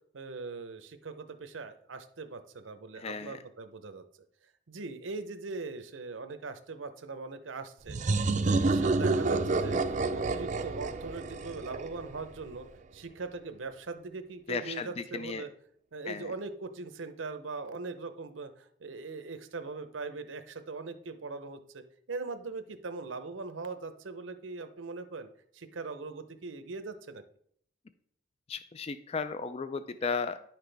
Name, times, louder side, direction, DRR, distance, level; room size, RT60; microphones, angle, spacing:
voice 1, 0.1-4.0 4.7-8.0 8.3-9.8 10.1-12.7 12.9-15.5 15.9-25.3 25.5-27.2, right 3 dB, 80° right, 9 dB, 0.7 m, -40 dB
voice 2, 3.0-3.4 14.5-15.4 16.1-16.3 28.5-30.4, left 5 dB, 30° left, 11 dB, 0.3 m, -35 dB
sound 1, 7.9-12.4, right 3 dB, 40° right, 0.5 m, -29 dB
10.0 x 5.9 x 3.4 m, 0.66 s
head